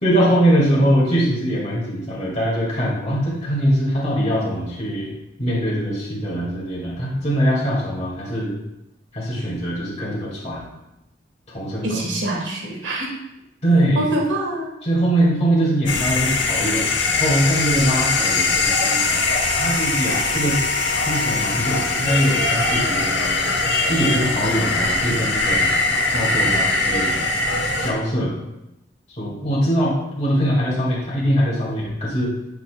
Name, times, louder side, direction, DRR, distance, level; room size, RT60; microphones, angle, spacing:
voice 1, 0.0-5.1 5.4-8.5 9.1-10.7 11.5-12.0 13.6-14.0 14.8-16.9 17.2-19.3 19.6-20.6 21.1-23.4 23.9-25.7 26.1-27.2 27.8-28.3 29.2-32.3, equal, 35° left, -5 dB, 2.0 m, -22 dB
voice 2, 11.8-13.1 13.9-14.7, right 1 dB, 70° right, -2 dB, 2.0 m, -24 dB
sound 1, 15.9-27.9, left 3 dB, 65° left, 0.9 m, -21 dB
8.8 x 6.8 x 2.2 m, 0.90 s
head